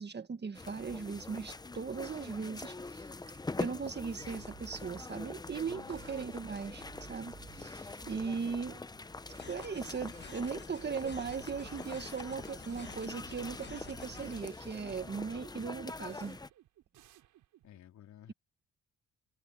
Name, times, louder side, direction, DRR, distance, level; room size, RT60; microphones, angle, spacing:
voice 1, 0.0-3.0 3.6-8.8 9.5-16.4, right 5 dB, 35° right, 1.9 m, -38 dB
sound 1, 0.5-16.5, left 3 dB, 15° left, 0.7 m, -44 dB
sound 2, 4.2-17.8, right 13 dB, 80° right, 7.7 m, -58 dB
voice 2, 5.7-6.1 17.6-18.3, left 10 dB, 70° left, 3.8 m, -54 dB
sound 3, 9.4-14.4, left 6 dB, 35° left, 1.3 m, -51 dB
cardioid pair, 90°, 30 cm